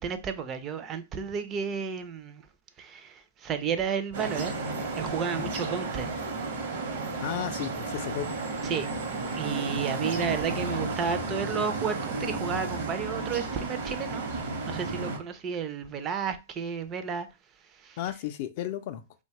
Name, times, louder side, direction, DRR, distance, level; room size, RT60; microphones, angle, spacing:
voice 1, 0.0-2.4 2.8-4.6 4.9-6.1 8.6-8.9 9.3-14.2 14.7-17.3 17.8-18.0, right 6 dB, 25° right, 0.3 m, -32 dB
sound 1, 4.1-15.2, right 3 dB, 65° right, 0.7 m, -33 dB
voice 2, 7.2-8.3 18.0-19.0, left 11 dB, 50° left, 0.3 m, -33 dB
2.9 x 2.2 x 2.8 m
hypercardioid pair, 135°, 0 cm